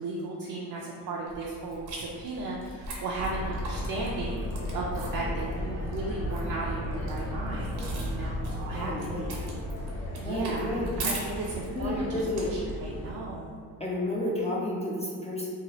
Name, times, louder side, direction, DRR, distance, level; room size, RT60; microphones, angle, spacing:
voice 1, 0.0-4.4 4.7-9.4 10.2-12.2 12.8-13.6, right 2 dB, 55° right, -3 dB, 0.5 m, -35 dB
sound 1, 1.3-12.9, right 2 dB, 70° right, 0.8 m, -42 dB
sound 2, 3.1-13.1, left 1 dB, 70° left, 1.0 m, -35 dB
voice 2, 8.7-9.3 10.2-10.9 11.7-12.5 13.8-15.5, left 1 dB, 15° left, -4 dB, 0.4 m, -31 dB
2.8 x 2.3 x 2.9 m, 2.2 s
cardioid pair, 85°, 41 cm